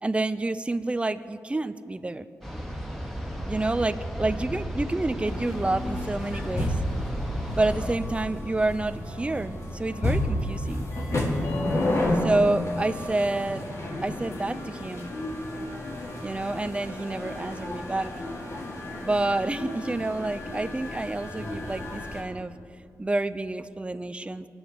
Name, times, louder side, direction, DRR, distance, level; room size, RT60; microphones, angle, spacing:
voice 1, 0.0-2.3 3.5-6.8 7.6-10.9 12.2-13.6 14.0-15.1 16.2-18.1 19.0-22.5 23.0-24.5, right 2 dB, 20° right, 12 dB, 0.6 m, -28 dB
sound 1, 2.4-7.9, equal, 5° left, 3.0 m, -34 dB
sound 2, 5.2-22.2, left 1 dB, 55° left, 3.8 m, -31 dB
23.5 x 8.0 x 6.5 m, 2.5 s
cardioid pair, 70°, 6 cm